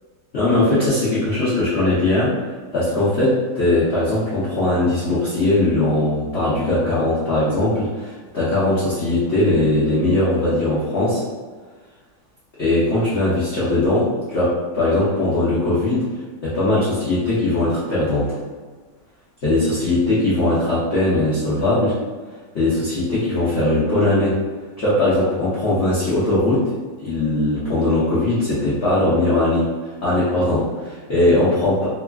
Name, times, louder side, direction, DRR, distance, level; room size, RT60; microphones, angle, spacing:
voice 1, 0.3-2.4 2.7-11.2 12.6-16.0 16.4-18.4 19.4-22.0 22.5-24.4 24.8-26.6 27.0-29.7 30.0-31.9, left 2 dB, 75° left, -10 dB, 0.6 m, -19 dB
3.0 x 2.4 x 2.2 m, 1.4 s
omnidirectional pair, 2.0 m